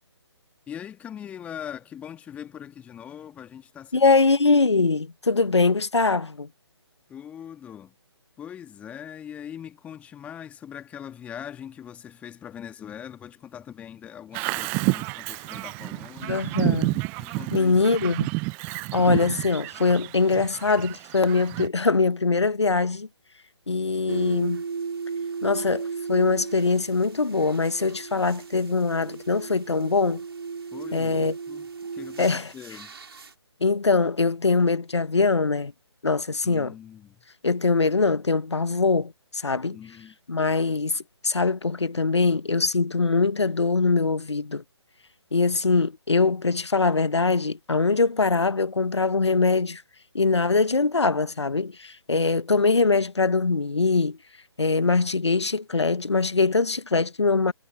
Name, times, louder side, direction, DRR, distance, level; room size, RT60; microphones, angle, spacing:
voice 1, 0.7-4.1 7.1-7.9 8.4-16.4 17.2-17.9 30.7-32.9 36.4-37.2 39.7-40.2 42.1-42.2, left 9 dB, 10° left, 1.9 m, -41 dB
voice 2, 3.9-6.5 16.3-17.0 17.5-18.3 18.9-23.1 23.7-24.6 25.4-30.2 30.9-31.3 32.2-32.5 33.6-35.7 36.0-36.7 37.4-39.8 40.3-44.6 45.3-49.8 50.1-54.2 54.6-57.5, left 4 dB, 75° left, 1.2 m, -22 dB
Bird vocalization bird call bird song, 14.3-21.7, right 30 dB, 10° right, 0.5 m, -30 dB
sound 1, 24.1-33.3, right 5 dB, 60° right, 3.3 m, -36 dB
figure-of-eight pair, 140°, 15 cm